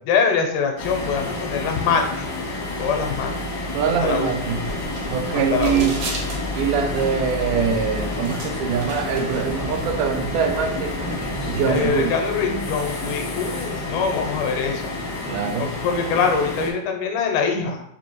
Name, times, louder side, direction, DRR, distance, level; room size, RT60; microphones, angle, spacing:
voice 1, 0.1-2.3 2.8-3.5 4.0-4.3 5.3-6.0 11.7-15.0 15.6-17.8, left 6 dB, 90° left, 3 dB, 2.1 m, -24 dB
sound 1, 0.8-16.7, left 2 dB, 75° left, 1.1 m, -30 dB
voice 2, 3.7-4.6 5.1-6.0 6.5-11.0 11.5-12.2 15.3-15.7, right 7 dB, 85° right, 5 dB, 2.0 m, -23 dB
sound 2, 4.5-11.9, equal, 65° right, 1.4 m, -32 dB
5.3 x 2.6 x 3.0 m, 0.70 s
omnidirectional pair, 3.5 m